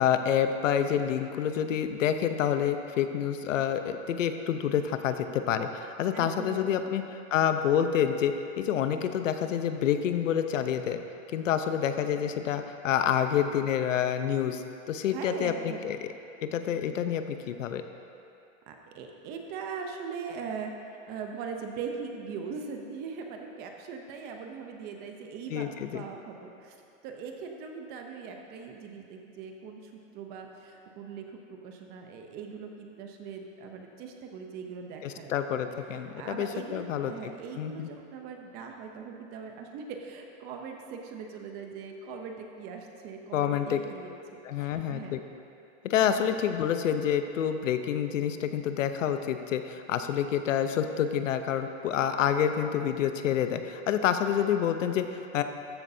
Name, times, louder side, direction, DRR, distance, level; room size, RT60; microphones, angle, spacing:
voice 1, 0.0-11.0 11.3-16.0 16.4-17.8 25.5-26.0 35.0-37.9 43.3-43.8 44.4-45.2 45.8-55.4, left 9 dB, 80° left, 8 dB, 0.9 m, -28 dB
voice 2, 6.1-6.9 15.1-15.9 18.7-20.7 21.1-26.8 27.0-35.3 36.2-44.1 44.6-45.1 46.1-46.3, right 5 dB, 25° right, 3 dB, 0.7 m, -40 dB
14.0 x 11.0 x 2.8 m, 2.6 s
supercardioid pair, 160°, 38 cm